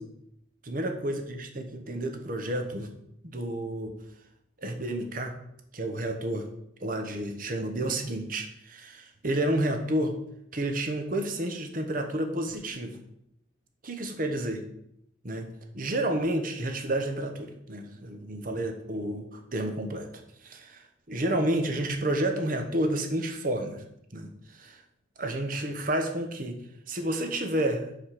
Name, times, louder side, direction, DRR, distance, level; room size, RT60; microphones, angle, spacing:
voice 1, 0.6-2.9 3.2-3.9 4.6-5.3 5.7-6.5 6.8-10.1 10.5-13.0 13.8-14.6 15.2-15.5 15.7-20.1 20.4-23.8 24.1-24.8 25.2-26.6 26.9-27.9, right 1 dB, 45° right, 5 dB, 1.1 m, -30 dB
5.9 x 5.2 x 6.6 m, 0.77 s
head